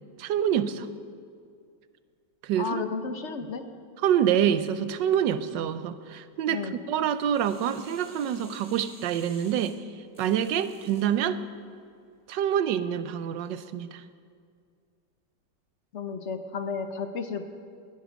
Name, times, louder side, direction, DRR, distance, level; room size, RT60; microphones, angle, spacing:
voice 1, 0.2-0.9 2.4-2.8 4.0-9.8 10.2-11.4 12.3-14.0, right 9 dB, 75° right, 12 dB, 1.4 m, -26 dB
voice 2, 2.6-3.7 6.5-6.8 15.9-17.4, left 5 dB, 50° left, 8 dB, 0.9 m, -33 dB
sound 1, 7.3-11.1 11.6-11.7, right 1 dB, 10° right, 2.7 m, -52 dB
20.0 x 10.5 x 6.2 m, 2.2 s
omnidirectional pair, 2.0 m